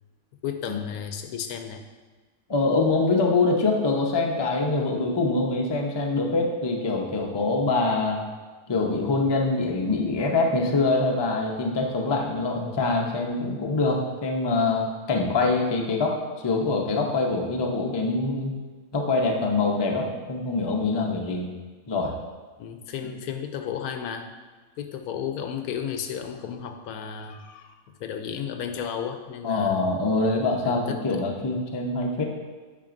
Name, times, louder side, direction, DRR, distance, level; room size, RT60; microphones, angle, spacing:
voice 1, 0.4-1.9 15.1-15.4 22.6-24.3 24.8-30.1 30.6-31.2, left 8 dB, 85° left, 6 dB, 1.1 m, -34 dB
voice 2, 2.5-8.2 8.7-18.5 18.9-21.5 21.9-22.1 23.0-23.1 29.4-32.2, left 3 dB, 30° left, 0 dB, 0.5 m, -24 dB
8.8 x 5.7 x 2.6 m, 1.4 s
omnidirectional pair, 1.5 m